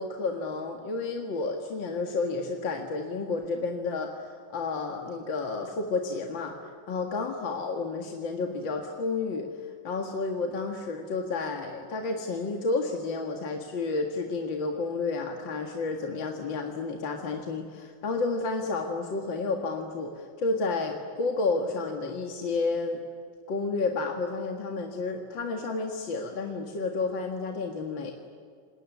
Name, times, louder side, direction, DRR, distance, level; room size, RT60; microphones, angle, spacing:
voice 1, 0.0-23.0 23.5-28.1, left 3 dB, 70° left, 3 dB, 2.6 m, -31 dB
27.5 x 21.0 x 9.5 m, 2.2 s
omnidirectional pair, 2.1 m